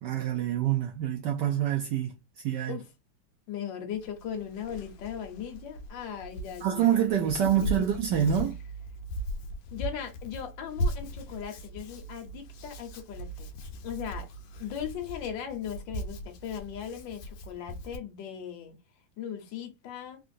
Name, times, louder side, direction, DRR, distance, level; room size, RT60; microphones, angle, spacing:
voice 1, 0.0-2.1 2.4-2.8 6.6-8.5, right 10 dB, 75° right, 1.1 m, -26 dB
voice 2, 3.5-7.8 9.7-13.5 13.8-14.3 14.6-18.7 19.2-20.2, left 9 dB, 70° left, 1.5 m, -38 dB
Hands, 3.9-18.0, equal, 85° left, 1.4 m, -38 dB
3.7 x 2.5 x 2.5 m
omnidirectional pair, 2.2 m